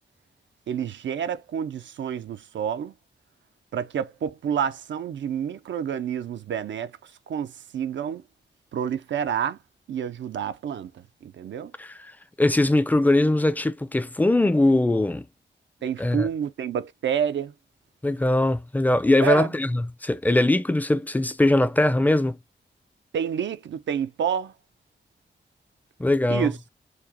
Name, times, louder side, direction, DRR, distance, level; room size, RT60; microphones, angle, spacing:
voice 1, 0.7-2.9 3.7-6.9 7.3-8.2 8.7-9.6 9.9-11.7 15.8-17.5 19.2-19.5 23.1-24.5 26.3-26.6, right 8 dB, 75° right, 0.4 m, -28 dB
voice 2, 11.8-12.1 12.4-15.3 16.0-16.3 18.0-22.4 26.0-26.5, left 1 dB, 10° left, 0.4 m, -21 dB
4.8 x 2.1 x 2.7 m
cardioid pair, 70°, 19 cm